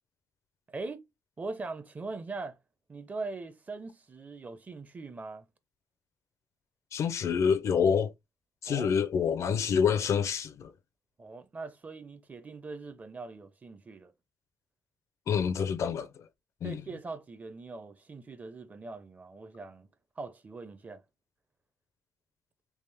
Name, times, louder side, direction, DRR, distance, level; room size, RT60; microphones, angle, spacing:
voice 1, 0.7-1.0 1.4-2.6 2.9-5.5 8.7-8.9 11.2-14.1 16.6-19.9 20.2-21.0, right 3 dB, 30° right, 0.6 m, -41 dB
voice 2, 6.9-8.1 8.6-10.7 15.3-16.3 16.6-16.8, left 7 dB, 60° left, 0.5 m, -27 dB
3.5 x 2.4 x 3.4 m
cardioid pair, 95°, 6 cm